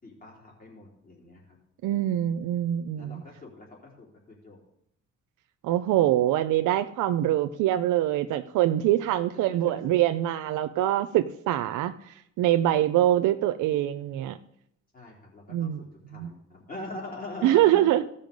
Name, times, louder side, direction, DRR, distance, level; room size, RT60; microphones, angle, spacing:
voice 1, 0.0-1.6 3.0-4.6 9.5-9.6 14.9-17.9, left 2 dB, 30° left, -3 dB, 3.4 m, -42 dB
voice 2, 1.8-3.2 5.6-11.9 12.4-14.4 15.5-15.8 16.1-16.3 17.4-18.0, right 13 dB, 85° right, 9 dB, 0.6 m, -24 dB
15.5 x 5.5 x 5.2 m, 0.74 s
cardioid pair, 90°, 30 cm